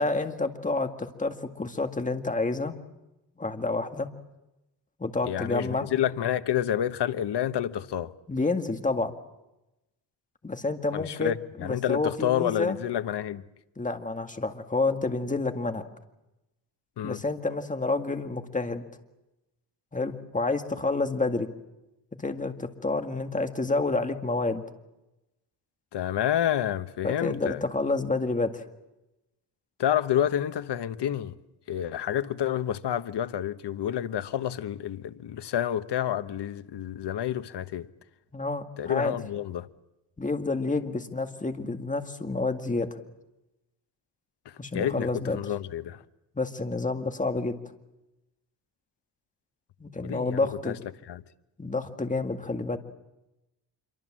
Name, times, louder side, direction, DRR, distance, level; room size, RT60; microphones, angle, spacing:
voice 1, 0.0-2.8 3.4-4.1 5.0-5.9 8.3-9.1 10.4-11.3 11.6-12.8 13.8-15.8 17.0-18.8 19.9-21.5 22.2-24.6 27.0-28.6 38.3-39.2 40.2-42.9 44.6-45.4 46.4-47.6 49.8-50.8 51.6-52.8, left 3 dB, 20° left, 2.0 m, -29 dB
voice 2, 5.2-8.1 10.9-13.4 17.0-17.2 25.9-27.6 29.8-31.3 31.7-37.9 38.8-39.7 44.4-45.1 45.3-46.0 50.0-50.8 51.1-51.2, left 10 dB, 75° left, 1.2 m, -29 dB
26.5 x 24.0 x 7.6 m
wide cardioid pair, 120°, 41 cm